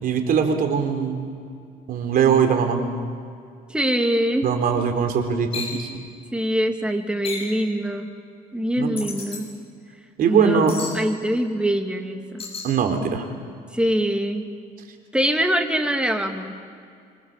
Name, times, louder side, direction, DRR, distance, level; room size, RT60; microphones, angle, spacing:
voice 1, 0.0-1.3 1.9-2.8 4.4-5.9 8.7-9.0 10.2-10.7 12.6-13.3, right 7 dB, 60° right, 6 dB, 3.8 m, -21 dB
voice 2, 3.7-4.5 6.3-8.1 8.5-9.5 10.3-12.4 13.7-14.4 15.1-16.5, equal, 5° right, 4 dB, 2.6 m, -23 dB
sound 1, 5.5-5.8 7.2-7.6 9.0-9.4 10.7-11.0 12.4-12.7, left 4 dB, 35° left, 7.8 m, -32 dB
27.0 x 25.5 x 7.5 m, 2.3 s
cardioid pair, 110°, 17 cm